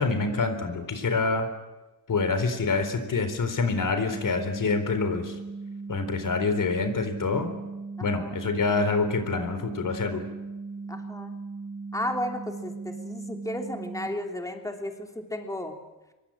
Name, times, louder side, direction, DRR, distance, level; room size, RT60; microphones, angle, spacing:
voice 1, 0.0-1.4 2.1-5.3 5.9-7.5 8.0-10.2, left 4 dB, 65° left, 9 dB, 4.1 m, -26 dB
sound 1, 4.1-14.1, right 4 dB, 55° right, 4.5 m, -38 dB
voice 2, 8.0-8.4 10.9-11.4 11.9-15.8, left 1 dB, 10° left, 3 dB, 3.1 m, -34 dB
25.0 x 24.0 x 8.8 m, 1.1 s
wide cardioid pair, 135°, 35 cm